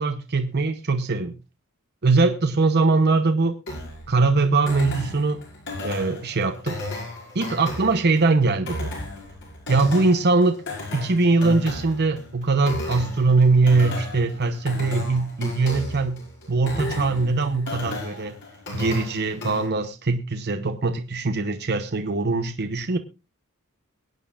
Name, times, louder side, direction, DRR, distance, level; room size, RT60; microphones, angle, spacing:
voice 1, 0.0-1.3 2.0-3.6 4.1-5.4 5.8-6.8 7.3-8.7 9.7-10.6 10.9-16.2 16.5-18.4 18.7-23.0, right 3 dB, 50° right, 7 dB, 0.9 m, -21 dB
sound 1, 3.7-19.7, left 2 dB, 60° left, 5.6 m, -34 dB
23.0 x 9.3 x 2.5 m, 0.29 s
head